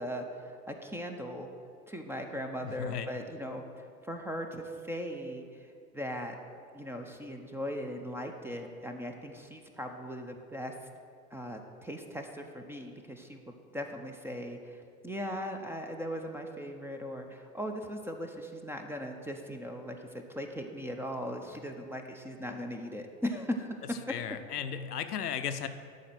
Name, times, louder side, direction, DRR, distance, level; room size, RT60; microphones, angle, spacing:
voice 1, 0.0-1.5 1.9-3.7 4.0-6.4 6.7-10.7 11.3-20.0 20.3-23.7 24.1-24.2, equal, 5° right, 4 dB, 0.7 m, -39 dB
voice 2, 2.6-3.1 24.1-25.7, left 8 dB, 85° left, 9 dB, 0.7 m, -35 dB
11.5 x 4.3 x 7.6 m, 2.3 s
figure-of-eight pair, 85°, 46 cm